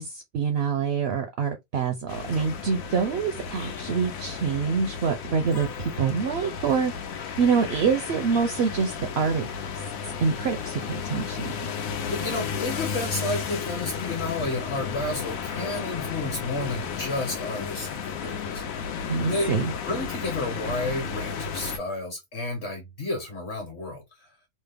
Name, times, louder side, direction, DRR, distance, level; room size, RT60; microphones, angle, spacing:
voice 1, 0.0-6.9 7.4-9.5 10.2-11.7 19.1-19.7, right 5 dB, 65° right, 0.7 m, -26 dB
sound 1, 2.1-21.8, left 6 dB, 90° left, 1.1 m, -33 dB
voice 2, 12.1-19.6 19.8-24.3, left 2 dB, 55° left, 1.2 m, -31 dB
3.2 x 2.0 x 3.3 m
omnidirectional pair, 1.4 m